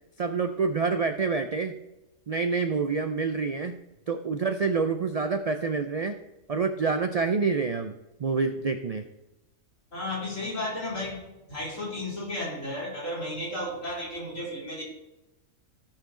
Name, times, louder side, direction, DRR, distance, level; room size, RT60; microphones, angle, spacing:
voice 1, 0.2-1.7 2.3-3.8 4.1-6.2 6.5-7.9 8.2-9.0, right 4 dB, 65° right, 8 dB, 0.3 m, -27 dB
voice 2, 9.9-14.8, left 1 dB, 75° left, -5 dB, 3.8 m, -33 dB
15.0 x 5.8 x 3.8 m, 0.98 s
omnidirectional pair, 1.3 m